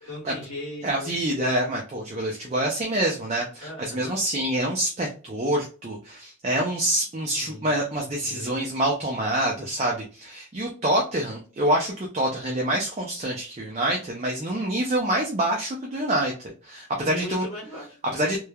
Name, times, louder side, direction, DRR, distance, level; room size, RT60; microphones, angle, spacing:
voice 1, 0.0-1.1 3.6-4.2 7.3-8.7 17.0-18.0, left 1 dB, 85° left, -2 dB, 1.0 m, -39 dB
voice 2, 0.8-17.4 18.1-18.4, right 1 dB, 30° right, 0 dB, 0.4 m, -26 dB
3.1 x 2.0 x 2.2 m, 0.36 s
head